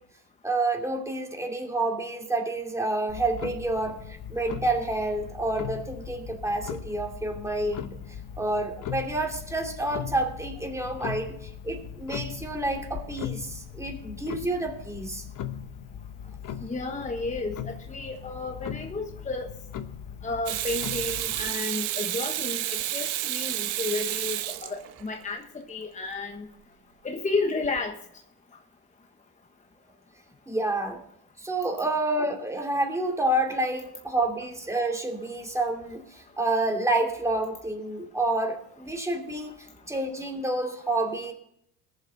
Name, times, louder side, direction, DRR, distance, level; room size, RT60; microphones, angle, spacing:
voice 1, 0.4-8.0 8.4-15.2 30.5-31.0 31.4-41.3, right 2 dB, 5° right, 1 dB, 2.7 m, -29 dB
Clock, 3.1-21.5, left 9 dB, 45° left, 1.0 m, -39 dB
voice 2, 16.6-19.5 20.2-26.5 27.0-28.0 39.4-39.5, left 3 dB, 15° left, 3 dB, 1.2 m, -32 dB
Water tap faucet / Sink (filling or washing), 20.5-25.2 27.6-27.8, right 14 dB, 80° right, 1.2 m, -30 dB
20.0 x 7.4 x 4.0 m, 0.74 s
cardioid pair, 105°, 44 cm